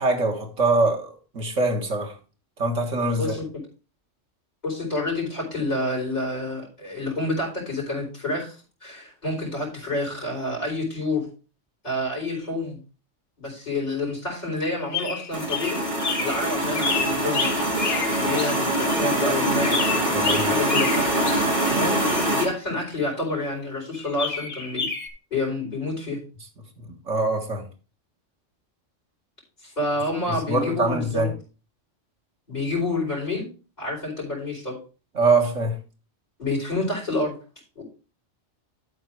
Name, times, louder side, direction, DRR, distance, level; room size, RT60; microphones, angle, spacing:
voice 1, 0.0-2.2 2.6-3.3 20.1-20.6 26.9-27.7 30.3-31.3 35.2-35.8, right 2 dB, 85° right, 2.0 m, -23 dB
voice 2, 4.6-11.3 11.8-12.8 13.4-15.8 16.2-17.5 18.1-20.0 20.3-21.0 21.7-22.0 22.3-24.9 25.3-26.2 29.6-31.3 32.5-33.5 33.8-34.8 36.4-37.4 37.8-37.9, left 2 dB, 35° left, 4.4 m, -28 dB
sound 1, 14.6-19.1 19.6-22.3 23.9-25.1, left 5 dB, 70° left, 1.6 m, -30 dB
sound 2, 15.3-22.4, right 1 dB, 45° right, 2.7 m, -24 dB
12.5 x 4.2 x 4.7 m
omnidirectional pair, 1.2 m